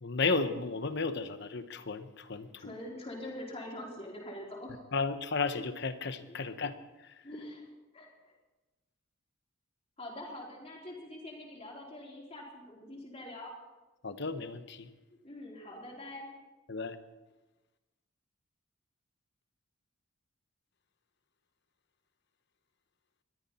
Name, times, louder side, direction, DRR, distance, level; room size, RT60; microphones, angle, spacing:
voice 1, 0.0-2.8 4.9-6.7 14.0-14.9 16.7-17.0, left 4 dB, 55° left, 11 dB, 1.0 m, -33 dB
voice 2, 2.6-4.8 6.3-6.4 7.2-8.1 10.0-13.5 15.2-16.3, left 1 dB, 30° left, -2 dB, 3.9 m, -44 dB
22.0 x 13.5 x 4.3 m, 1.1 s
head